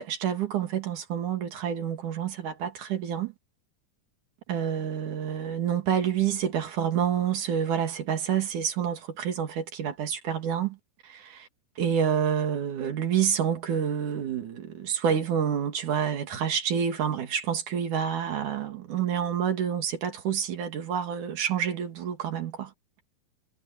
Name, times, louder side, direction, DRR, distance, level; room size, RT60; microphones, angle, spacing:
voice 1, 0.0-3.3 4.5-10.8 11.0-11.5 11.8-22.7, right 8 dB, 65° right, 3.6 m, -28 dB
omnidirectional pair, 3.9 m